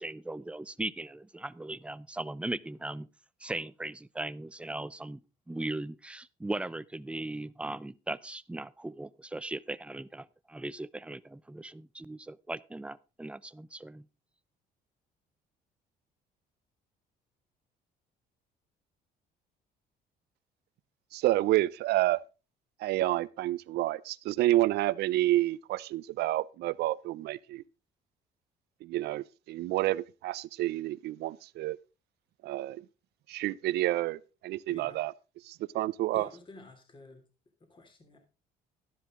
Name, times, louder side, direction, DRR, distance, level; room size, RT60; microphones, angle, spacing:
voice 1, 0.0-3.1 3.4-5.2 5.5-14.0, right 2 dB, 5° right, 0.5 m, -38 dB
voice 2, 21.1-22.2 22.8-27.6 28.8-31.8 32.4-32.9 33.3-35.1 35.4-36.3, right 16 dB, 75° right, 0.6 m, -29 dB
voice 3, 34.7-35.0 36.1-37.2 37.7-38.2, left 2 dB, 30° left, 3.1 m, -50 dB
12.5 x 11.0 x 3.7 m
cardioid pair, 110°, 17 cm